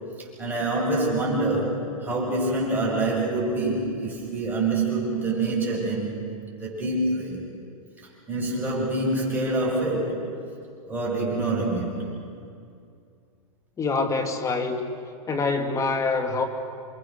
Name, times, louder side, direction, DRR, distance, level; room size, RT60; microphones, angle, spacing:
voice 1, 0.4-6.2 6.6-7.4 8.3-10.3 10.9-12.0, right 2 dB, 10° right, -4 dB, 7.9 m, -26 dB
voice 2, 13.8-14.8 15.3-16.4, left 4 dB, 20° left, 6 dB, 2.4 m, -25 dB
29.0 x 23.5 x 6.7 m, 2.4 s
hypercardioid pair, 130°, 18 cm